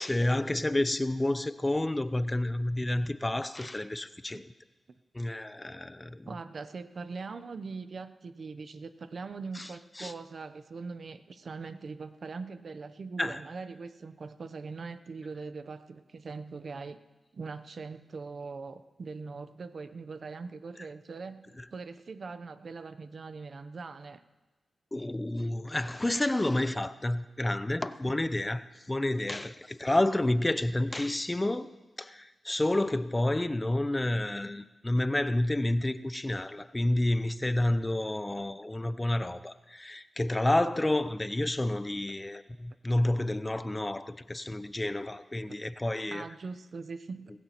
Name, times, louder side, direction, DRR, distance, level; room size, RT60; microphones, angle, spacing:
voice 1, 0.0-4.5 5.1-6.3 9.5-9.7 10.0-10.1 13.2-13.4 21.6-21.7 24.9-31.7 32.0-46.3, left 1 dB, 20° left, 13 dB, 0.6 m, -30 dB
voice 2, 6.2-17.0 17.3-21.4 21.7-24.2 44.8-44.9 46.1-47.3, right 4 dB, 60° right, 10 dB, 0.7 m, -41 dB
19.0 x 16.0 x 3.0 m, 1.2 s
cardioid pair, 65°, 0 cm